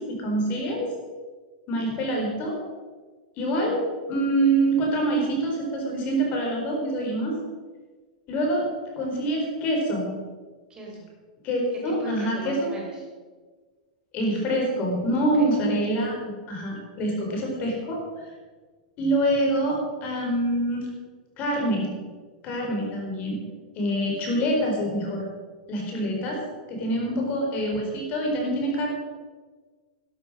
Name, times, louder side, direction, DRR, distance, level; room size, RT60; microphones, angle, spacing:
voice 1, 0.1-0.9 1.7-2.5 3.4-3.8 4.1-7.3 8.3-8.6 9.0-10.1 11.4-12.5 14.1-18.0 19.0-20.9 21.4-21.9 22.4-23.4 23.7-25.2 25.7-26.4 26.7-28.9, right 1 dB, 30° left, 0 dB, 4.5 m, -25 dB
voice 2, 1.7-2.0 3.6-3.8 10.7-11.1 11.7-13.1 15.4-15.5 26.9-27.2, right 2 dB, 15° right, -2 dB, 4.1 m, -38 dB
12.5 x 10.5 x 6.3 m, 1.4 s
supercardioid pair, 150°, 5 cm